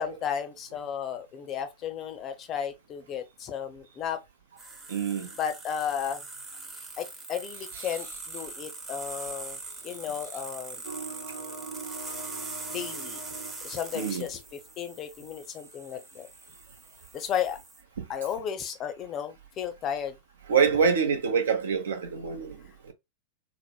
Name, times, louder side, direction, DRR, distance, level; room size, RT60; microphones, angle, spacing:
voice 1, 0.0-4.2 5.4-6.2 7.0-9.6 9.8-10.8 12.7-13.2 13.6-16.3 17.1-17.6 18.1-20.2, left 8 dB, 30° left, 0.6 m, -34 dB
sound 1, 4.6-17.8, right 3 dB, 15° right, 0.7 m, -42 dB
voice 2, 4.9-5.3 13.9-14.3 20.5-22.6 22.8-22.9, right 6 dB, 65° right, 0.7 m, -25 dB
sound 2, 10.8-14.7, right 4 dB, 90° left, 1.0 m, -42 dB
3.5 x 2.1 x 2.3 m
figure-of-eight pair, 90°, 0 cm